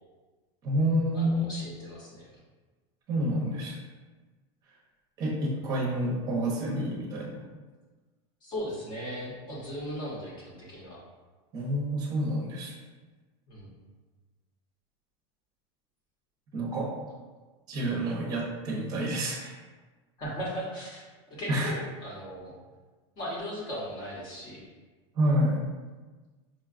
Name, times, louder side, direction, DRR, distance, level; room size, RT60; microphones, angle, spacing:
voice 1, 0.6-1.5 3.1-3.7 5.2-7.4 11.5-12.7 16.5-16.9 17.7-19.5 21.5-21.7 25.2-25.6, right 1 dB, 25° right, -3 dB, 0.7 m, -28 dB
voice 2, 1.1-2.4 8.4-11.0 13.5-13.7 17.8-18.0 20.2-22.6 23.2-24.6, equal, 30° left, -5 dB, 0.9 m, -38 dB
5.1 x 2.2 x 2.4 m, 1.3 s
supercardioid pair, 180°, 15 cm